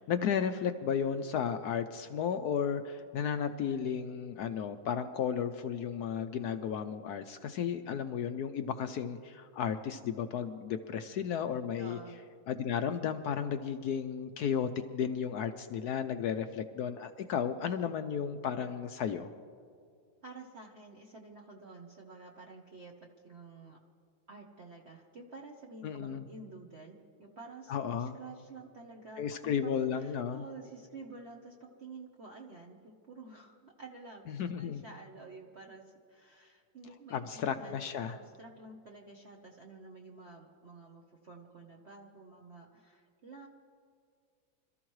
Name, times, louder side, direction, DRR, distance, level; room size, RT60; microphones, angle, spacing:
voice 1, 0.0-12.0 12.5-19.3 25.8-26.2 27.7-28.2 29.2-30.4 34.3-34.8 37.1-38.1, left 7 dB, 70° left, 9 dB, 1.0 m, -34 dB
voice 2, 11.8-12.2 20.2-23.8 24.3-27.7 28.0-34.2 34.6-43.5, right 3 dB, 45° right, 0 dB, 1.0 m, -50 dB
26.5 x 13.5 x 3.1 m, 2.2 s
omnidirectional pair, 2.1 m